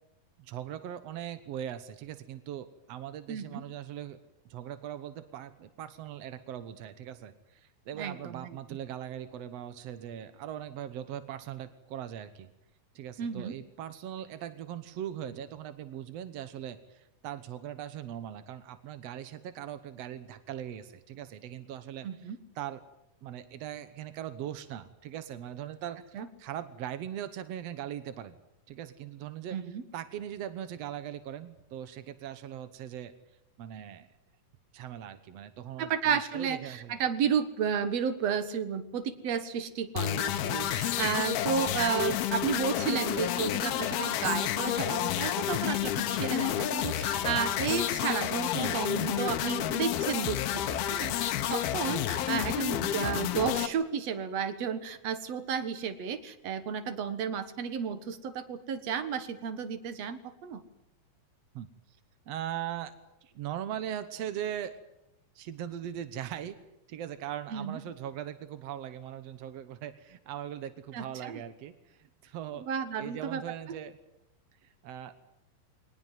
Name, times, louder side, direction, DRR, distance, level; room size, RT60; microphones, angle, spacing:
voice 1, 0.4-4.2 4.5-12.5 12.9-22.3 22.5-22.8 23.2-28.3 28.7-29.6 29.9-33.1 33.6-34.1 34.7-37.0 41.5-41.6 46.1-46.2 51.9-52.0 61.5-61.7 62.3-62.9 63.2-64.8 65.3-66.6 66.9-72.7 73.0-74.0 74.6-75.2, right 10 dB, 75° right, 12 dB, 1.5 m, -40 dB
voice 2, 3.3-3.6 7.9-8.6 13.2-13.5 22.0-22.4 26.1-26.3 29.5-29.8 35.8-60.6 67.5-67.8 70.9-71.4 72.6-73.4, right 7 dB, 55° right, 12 dB, 2.0 m, -32 dB
sound 1, 40.0-53.7, left 12 dB, 75° left, 3.0 m, -30 dB
22.5 x 19.5 x 9.2 m, 0.88 s
omnidirectional pair, 4.5 m